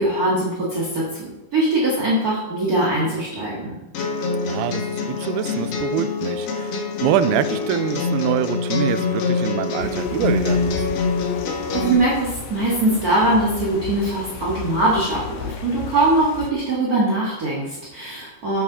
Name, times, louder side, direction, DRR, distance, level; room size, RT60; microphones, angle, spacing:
voice 1, 0.0-3.7 11.7-18.6, right 2 dB, 45° right, -6 dB, 1.1 m, -21 dB
sound 1, 3.9-11.9, left 4 dB, 65° left, 1.6 m, -24 dB
voice 2, 4.4-6.7 7.0-10.9, right 11 dB, 85° right, 13 dB, 2.4 m, -25 dB
sound 2, 9.8-16.5, left 8 dB, 90° left, 2.7 m, -35 dB
8.4 x 6.9 x 5.5 m, 1.1 s
omnidirectional pair, 4.7 m